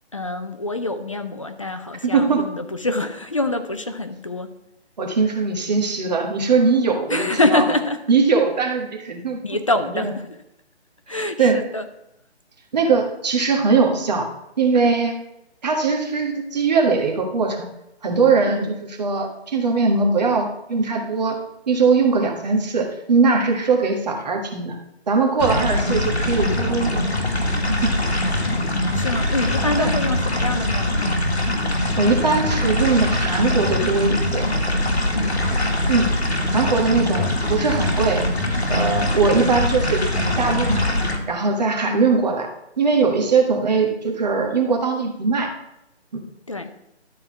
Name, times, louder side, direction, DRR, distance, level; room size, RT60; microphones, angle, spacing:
voice 1, 0.1-4.5 7.1-8.0 9.4-10.3 11.1-11.9 18.5-18.7 28.6-31.1 35.1-35.5 41.8-42.1 46.5-46.7, left 2 dB, 30° left, 8 dB, 0.5 m, -25 dB
voice 2, 2.0-2.5 5.0-7.6 8.1-9.4 9.9-10.1 11.1-11.6 12.7-14.3 14.6-15.1 15.6-17.7 18.0-24.8 25.1-27.1 27.6-27.9 29.8-29.9 32.0-34.5 35.9-36.1 36.5-38.3 38.7-40.8 41.3-42.5 42.8-45.5 46.1-46.2, right 4 dB, 40° right, 1 dB, 1.7 m, -20 dB
sound 1, 25.4-41.2, left 1 dB, 70° left, 2.0 m, -22 dB
12.5 x 4.4 x 5.8 m, 0.85 s
figure-of-eight pair, 150°, 33 cm